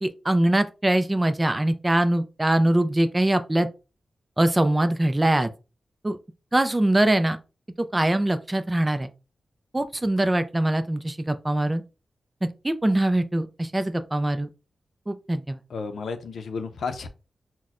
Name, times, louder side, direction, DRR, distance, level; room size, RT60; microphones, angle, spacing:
voice 1, 0.0-3.7 4.4-5.5 6.0-6.2 6.5-7.4 7.9-9.1 9.7-11.8 12.4-14.5 15.1-15.6, right 1 dB, 15° right, 0.4 m, -23 dB
voice 2, 15.7-17.1, left 4 dB, 80° left, 0.5 m, -32 dB
5.8 x 2.1 x 2.4 m
wide cardioid pair, 125°, 0 cm